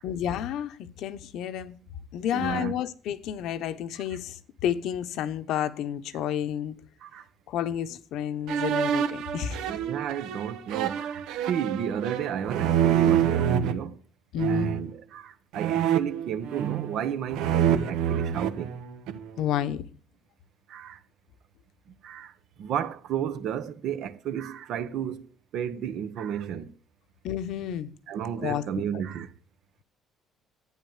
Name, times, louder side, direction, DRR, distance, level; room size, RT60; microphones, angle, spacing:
voice 1, 0.0-1.8 2.1-6.8 7.5-9.6 14.3-14.7 19.4-19.8 27.2-27.9 28.4-28.6 28.9-29.0, left 10 dB, 70° left, 1.0 m, -30 dB
voice 2, 2.3-2.7 7.0-7.3 9.7-14.0 14.5-18.8 20.7-21.0 21.9-22.3 22.6-25.3 25.5-26.7 28.1-29.3, right 9 dB, 60° right, 1.1 m, -32 dB
sound 1, 8.5-13.7 14.4-14.9 15.5-17.0 17.3-19.3, right 9 dB, 90° right, 1.1 m, -26 dB
12.0 x 9.4 x 7.3 m
cardioid pair, 150°, 0 cm